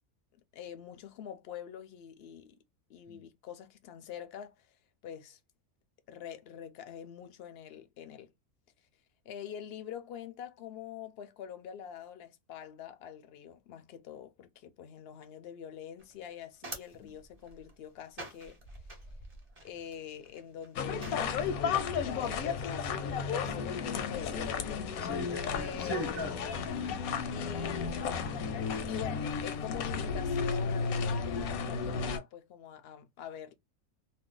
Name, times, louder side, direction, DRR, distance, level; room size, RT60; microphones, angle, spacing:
voice 1, 0.3-2.6 2.9-4.8 5.0-5.4 6.1-8.3 9.2-18.6 19.6-21.1 21.7-25.1 25.5-26.1 27.3-28.3 28.9-33.5, left 9 dB, 60° left, 0.6 m, -45 dB
sound 1, 16.0-21.6, right 2 dB, 30° right, 1.0 m, -49 dB
sound 2, 20.8-32.2, left 5 dB, 85° left, 1.0 m, -33 dB
voice 2, 25.0-27.0, equal, 15° left, 0.4 m, -40 dB
2.6 x 2.2 x 3.7 m
omnidirectional pair, 1.5 m